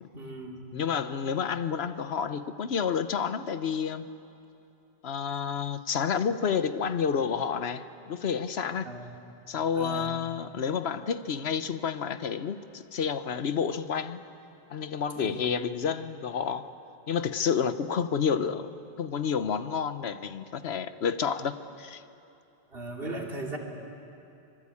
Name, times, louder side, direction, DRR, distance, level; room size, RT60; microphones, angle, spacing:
voice 1, 0.1-0.7 8.8-9.1 9.7-10.1 15.1-15.5 22.7-23.6, right 2 dB, 65° right, 0 dB, 3.2 m, -38 dB
voice 2, 0.7-4.1 5.0-8.9 9.5-14.2 14.7-16.7 17.1-18.7 19.0-22.0, left 7 dB, 80° left, 11 dB, 1.1 m, -30 dB
25.0 x 24.0 x 8.5 m, 2.7 s
omnidirectional pair, 1.1 m